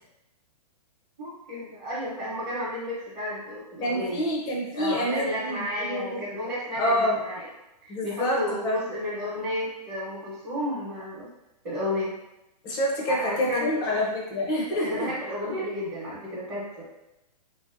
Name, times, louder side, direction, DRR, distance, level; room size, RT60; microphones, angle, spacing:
voice 1, 1.2-4.2 4.7-7.5 7.8-11.3 11.6-12.1 13.1-14.0 14.8-16.8, left 1 dB, 30° right, -8 dB, 1.0 m, -32 dB
voice 2, 3.8-6.2 6.8-7.2 7.9-8.8 12.6-15.1, equal, 20° left, -2 dB, 0.5 m, -27 dB
3.0 x 2.7 x 2.5 m, 0.94 s
hypercardioid pair, 145°, 21 cm